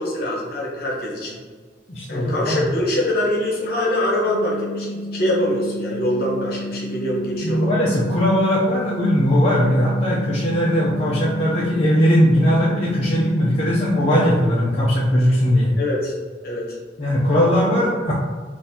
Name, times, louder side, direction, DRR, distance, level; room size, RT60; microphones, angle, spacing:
voice 1, 0.0-1.4 2.1-7.7 15.8-16.1 16.4-16.6 18.0-18.1, left 1 dB, 55° left, -3 dB, 0.9 m, -24 dB
voice 2, 1.9-2.6 7.4-15.7 17.0-18.1, equal, 35° left, -7 dB, 0.5 m, -19 dB
sound 1, 4.2-14.2, left 1 dB, 20° left, 1.0 m, -31 dB
3.8 x 2.5 x 2.7 m, 1.5 s
head